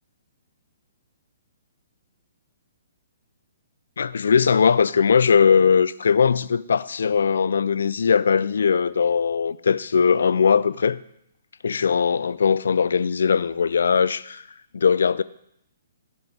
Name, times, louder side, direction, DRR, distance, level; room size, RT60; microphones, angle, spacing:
voice 1, 4.0-11.0 11.6-14.4 14.7-15.2, left 6 dB, 65° left, 0.4 m, -20 dB
13.5 x 5.9 x 5.1 m
figure-of-eight pair, 125°, 0 cm